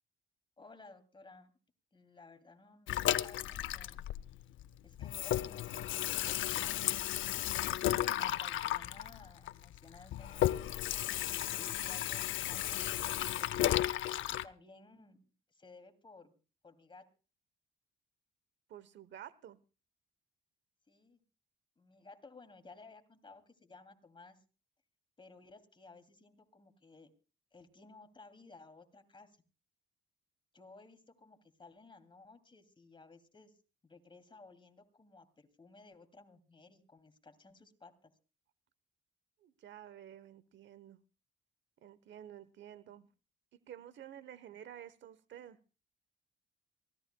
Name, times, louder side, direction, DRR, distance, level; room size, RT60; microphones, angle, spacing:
voice 1, 0.6-1.5 1.9-4.1 4.8-7.0 8.1-10.5 11.1-13.7 14.3-15.2 15.5-16.3 16.6-17.0 20.9-21.2 21.8-24.4 25.2-27.1 27.5-29.4 30.5-33.5 33.8-38.1, left 3 dB, 25° left, 9 dB, 2.7 m, -57 dB
Water tap faucet / Sink (filling or washing), 2.9-4.7 5.0-14.4, left 13 dB, 80° left, 0.6 m, -34 dB
voice 2, 18.7-19.6 39.4-41.0 41.8-43.1 43.7-45.6, right 10 dB, 70° right, 17 dB, 1.0 m, -51 dB
24.0 x 17.0 x 2.3 m, 0.34 s
cardioid pair, 90°, 20 cm